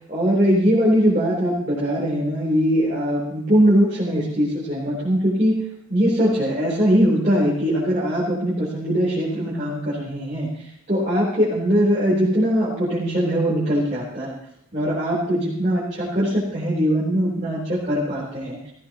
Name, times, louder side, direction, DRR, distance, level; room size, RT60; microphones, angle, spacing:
voice 1, 0.1-5.6 5.9-10.5 10.9-14.4 14.7-18.6, equal, 35° right, -7 dB, 3.9 m, -21 dB
18.5 x 15.5 x 3.1 m, 0.73 s
head